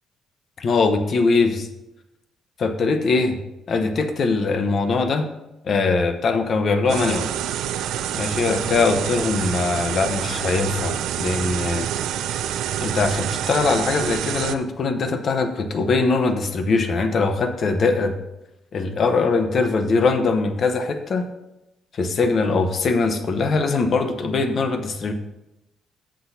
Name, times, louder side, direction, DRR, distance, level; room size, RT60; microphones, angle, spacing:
voice 1, 0.6-1.7 2.6-3.4 3.7-5.3 5.6-7.3 8.1-12.1 12.8-18.1 18.7-21.3 21.9-25.1, left 4 dB, 55° left, 8 dB, 0.9 m, -21 dB
sound 1, 6.9-14.5, right 10 dB, 85° right, 0.4 m, -27 dB
14.0 x 6.3 x 2.8 m, 0.92 s
cardioid pair, 90°, 0 cm